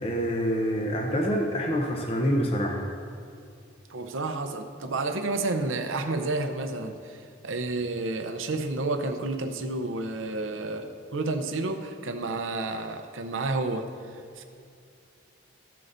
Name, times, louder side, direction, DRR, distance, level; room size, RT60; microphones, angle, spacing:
voice 1, 0.0-2.9, equal, 30° left, 0 dB, 0.7 m, -26 dB
voice 2, 3.9-14.4, right 2 dB, 80° right, 6 dB, 0.7 m, -30 dB
15.0 x 7.5 x 2.7 m, 2.4 s
head